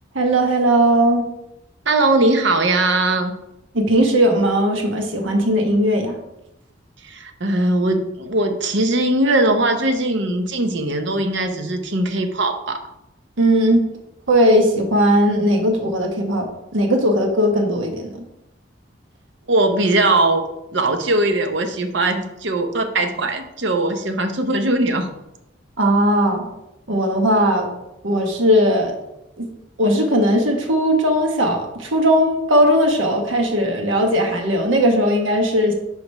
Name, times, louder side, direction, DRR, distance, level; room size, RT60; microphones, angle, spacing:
voice 1, 0.1-1.3 3.7-6.2 13.4-13.8 14.3-16.5 16.7-18.2 25.8-26.4 26.9-27.7 28.0-28.9 29.4-29.5 29.8-35.7, equal, 90° right, 4 dB, 1.2 m, -18 dB
voice 2, 1.9-3.4 7.0-12.9 19.5-20.5 20.7-25.1, right 2 dB, 65° right, 7 dB, 0.8 m, -20 dB
5.0 x 4.9 x 5.4 m, 0.88 s
head